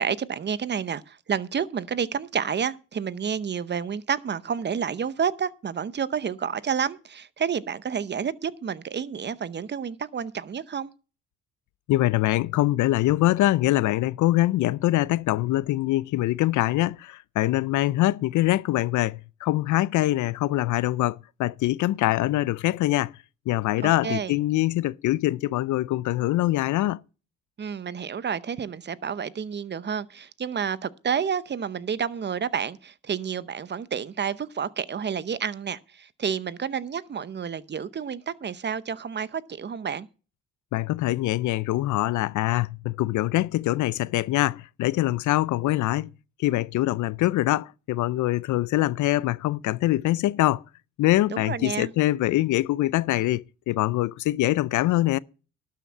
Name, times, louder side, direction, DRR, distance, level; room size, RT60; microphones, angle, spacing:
voice 1, 0.0-10.9 23.8-24.4 27.6-40.1 51.3-51.9, right 7 dB, 35° right, 0.7 m, -30 dB
voice 2, 11.9-23.1 23.5-27.0 40.7-46.1 46.4-50.6 51.0-55.2, left 16 dB, 75° left, 0.5 m, -24 dB
12.5 x 5.8 x 7.3 m
cardioid pair, 90°, 30 cm